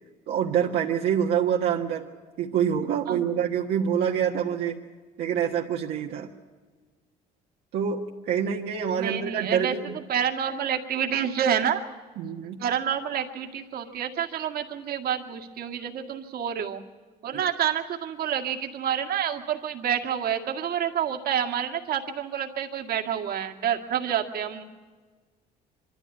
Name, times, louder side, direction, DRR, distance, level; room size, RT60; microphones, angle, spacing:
voice 1, 0.3-2.0 2.4-4.8 5.2-6.3 7.7-9.9 12.2-12.6 17.3-17.4, right 8 dB, 80° right, -1 dB, 1.6 m, -26 dB
voice 2, 9.0-9.7 10.1-11.8 12.6-16.8 17.2-24.6, right 9 dB, 65° right, 3 dB, 2.0 m, -28 dB
24.0 x 13.5 x 9.7 m, 1.4 s
cardioid pair, 110°, 17 cm